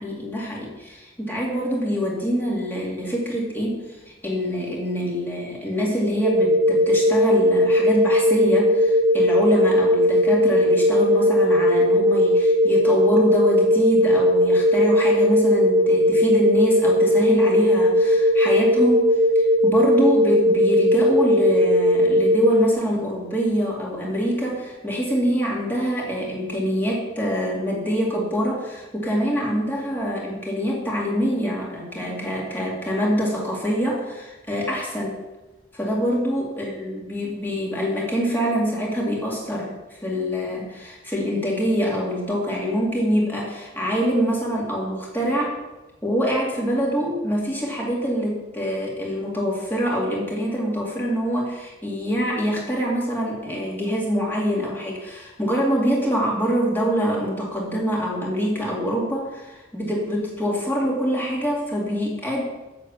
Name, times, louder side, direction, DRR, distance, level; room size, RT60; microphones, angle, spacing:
voice 1, 0.0-3.8 4.2-35.2 35.7-39.7 40.0-45.6 46.0-62.4, equal, 10° left, -3 dB, 2.4 m, -25 dB
sound 1, 6.2-22.7, left 1 dB, 60° right, 0.9 m, -18 dB
8.2 x 6.7 x 7.1 m, 1.1 s
head